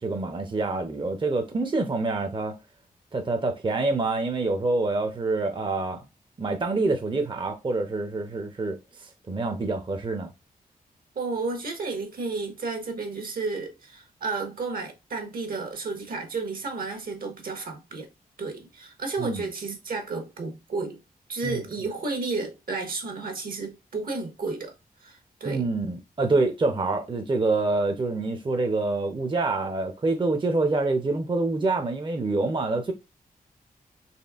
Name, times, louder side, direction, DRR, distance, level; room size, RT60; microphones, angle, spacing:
voice 1, 0.0-2.6 3.1-6.0 6.4-10.3 19.2-19.4 21.4-21.6 25.4-32.9, right 3 dB, 30° right, 0.7 m, -26 dB
voice 2, 11.1-18.1 18.4-21.0 21.3-24.7 25.0-25.7, right 3 dB, 70° right, 1.3 m, -32 dB
4.3 x 3.2 x 2.4 m
cardioid pair, 70°, 16 cm